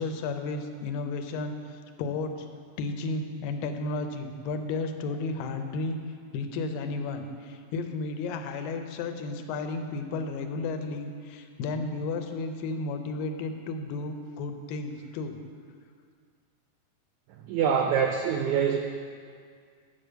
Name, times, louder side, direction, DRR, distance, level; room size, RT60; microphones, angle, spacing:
voice 1, 0.0-2.3 2.8-6.0 6.3-15.4, left 3 dB, 90° left, 6 dB, 2.4 m, -33 dB
voice 2, 17.5-18.8, right 7 dB, 85° right, 3 dB, 1.6 m, -25 dB
9.2 x 5.1 x 6.7 m, 2.1 s
omnidirectional pair, 3.9 m